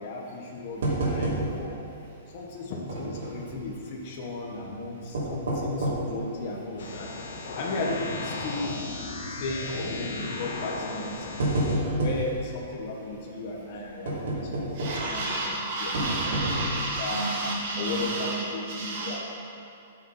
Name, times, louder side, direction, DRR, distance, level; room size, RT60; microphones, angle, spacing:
voice 1, 0.0-1.8 2.3-7.1 7.6-8.7 9.2-11.4 11.9-17.3 17.8-18.6 19.0-19.2, left 2 dB, 35° left, -2 dB, 1.5 m, -35 dB
sound 1, 0.8-1.8 2.1-2.2 2.9-3.6 4.9-6.2 6.7-6.8 7.5-7.7 8.0-8.1 9.3-9.6 10.5-10.6 11.0-12.3 14.1-15.2 15.9-16.9 17.5-17.6 17.9-18.0, right 1 dB, 65° right, 2.8 m, -29 dB
sound 2, 6.8-11.8, left 3 dB, 70° left, 2.0 m, -35 dB
voice 2, 14.7-18.3 18.7-19.2, right 2 dB, 35° right, -8 dB, 2.1 m, -30 dB
13.0 x 6.8 x 5.8 m, 2.5 s
hypercardioid pair, 180°, 0 cm